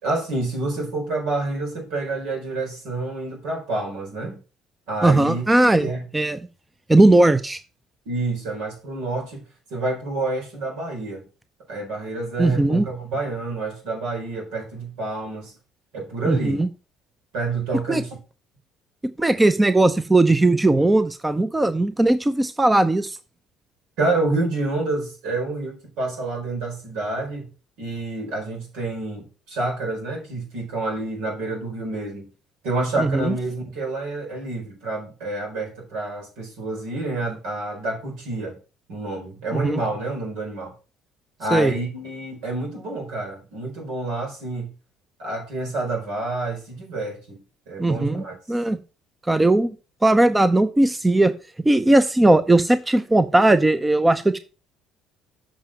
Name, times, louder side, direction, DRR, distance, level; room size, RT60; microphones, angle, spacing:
voice 1, 0.0-4.4 4.9-5.4 5.8-6.1 8.1-9.4 9.7-11.2 11.7-15.5 15.9-16.6 17.3-18.2 24.0-27.5 27.8-32.3 32.6-38.6 38.9-40.8 41.4-44.7 45.2-47.4 47.7-48.3, right 2 dB, 80° right, 4.1 m, -28 dB
voice 2, 5.0-6.4 6.9-7.6 12.4-12.8 16.3-16.7 17.9-18.0 19.2-23.2 33.0-33.3 39.5-39.8 41.5-41.7 47.8-48.8 49.3-49.8 50.0-51.3 51.6-54.4, right 2 dB, 15° right, 0.7 m, -18 dB
7.5 x 5.1 x 5.9 m
supercardioid pair, 80°, 0 cm